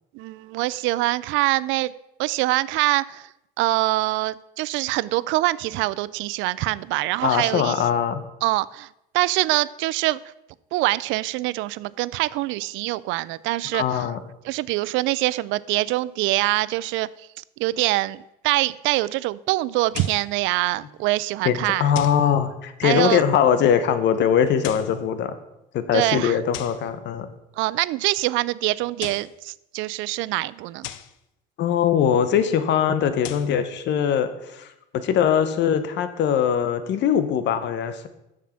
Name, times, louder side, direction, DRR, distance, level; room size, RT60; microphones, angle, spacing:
voice 1, 0.1-1.9 2.2-3.3 3.6-7.8 8.4-8.9 9.1-10.2 10.7-14.1 14.4-17.1 17.6-21.9 22.8-23.2 25.9-26.4 27.6-30.8, right 18 dB, 75° right, 19 dB, 0.4 m, -24 dB
voice 2, 7.2-8.2 13.7-14.2 21.4-25.3 25.7-27.3 31.6-38.1, left 8 dB, 60° left, 11 dB, 1.0 m, -21 dB
sound 1, 19.9-20.3 21.9-22.3 24.5-25.0 26.5-26.9 28.8-29.4 30.8-31.2 33.0-33.6, left 13 dB, 75° left, 0.6 m, -37 dB
7.3 x 6.4 x 5.8 m, 0.87 s
cardioid pair, 100°, 20 cm